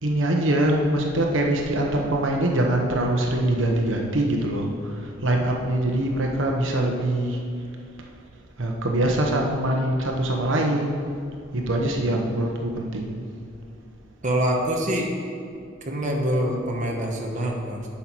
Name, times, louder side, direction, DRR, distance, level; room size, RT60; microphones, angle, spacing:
voice 1, 0.0-7.4 8.6-11.1 11.5-13.2, right 1 dB, 80° right, 1 dB, 1.1 m, -23 dB
voice 2, 11.8-12.3 14.2-15.1 15.8-17.9, right 1 dB, 40° right, -1 dB, 1.2 m, -26 dB
11.0 x 5.8 x 4.6 m, 2.5 s
head